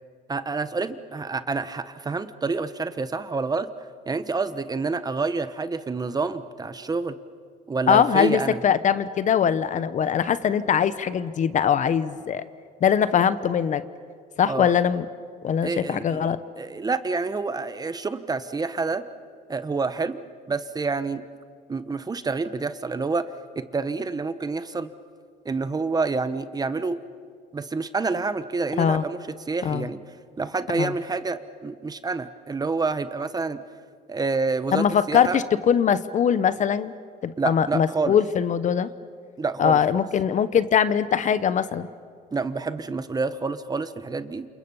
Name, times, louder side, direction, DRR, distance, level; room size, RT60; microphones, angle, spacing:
voice 1, 0.3-3.7 4.1-7.2 7.7-8.6 14.5-14.7 15.6-19.0 19.5-20.2 20.5-21.2 21.7-23.3 23.5-24.9 25.4-27.0 27.5-30.0 30.4-33.6 34.1-35.4 37.4-38.2 39.4-40.0 42.3-44.5, right 4 dB, 20° right, 12 dB, 1.1 m, -28 dB
voice 2, 7.9-12.4 12.8-13.8 14.4-15.1 15.4-16.4 28.8-29.0 29.6-29.9 30.8-30.9 34.7-36.9 37.2-38.9 39.6-41.9, left 8 dB, 45° left, 13 dB, 1.0 m, -22 dB
29.0 x 27.5 x 5.6 m, 2.1 s
cardioid pair, 110°, 17 cm